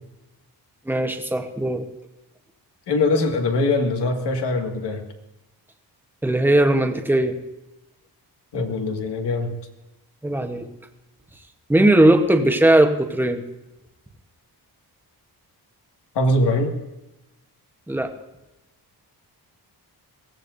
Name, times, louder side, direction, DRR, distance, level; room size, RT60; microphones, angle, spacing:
voice 1, 0.9-1.8 6.2-7.4 10.2-10.7 11.7-13.4 17.9-18.1, right 1 dB, 5° right, 4 dB, 1.0 m, -18 dB
voice 2, 2.9-5.0 8.5-9.5 16.2-16.8, left 2 dB, 80° left, 3 dB, 2.0 m, -22 dB
22.0 x 17.0 x 2.7 m, 0.98 s
wide cardioid pair, 140°, 40 cm